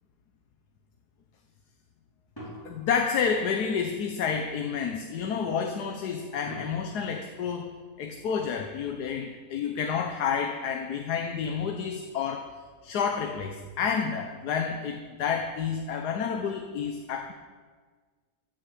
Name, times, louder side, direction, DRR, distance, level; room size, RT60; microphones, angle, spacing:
sound 1, 2.4-3.9 6.5-8.3, equal, 15° left, 4.9 m, -46 dB
voice 1, 2.6-7.7 8.0-12.6 12.8-17.3, left 6 dB, 85° left, 4 dB, 1.4 m, -30 dB
14.5 x 6.9 x 7.6 m, 1.5 s
omnidirectional pair, 1.7 m